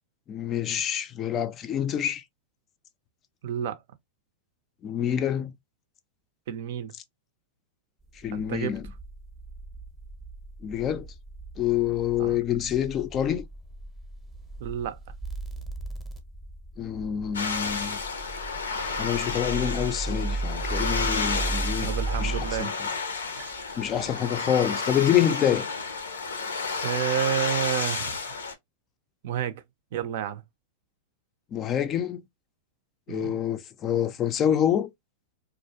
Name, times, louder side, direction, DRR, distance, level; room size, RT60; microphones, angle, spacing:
voice 1, 0.3-2.2 4.8-5.5 8.2-8.9 10.6-11.1 11.6-13.5 16.8-18.0 19.0-21.9 22.2-22.9 23.8-25.7 31.5-32.2 33.1-34.9, left 10 dB, 30° left, 0.4 m, -27 dB
voice 2, 3.4-3.8 6.5-6.9 8.3-8.8 12.2-12.4 14.6-15.0 21.8-22.7 23.3-23.8 26.8-28.2 29.2-29.6 29.9-30.4 33.1-33.4, right 10 dB, 65° right, 0.4 m, -30 dB
sound 1, 8.1-22.6 23.5-24.1, right 2 dB, 10° right, 0.7 m, -36 dB
sound 2, 17.3-28.5, left 4 dB, 90° left, 0.6 m, -31 dB
2.4 x 2.0 x 2.6 m
hypercardioid pair, 110°, 0 cm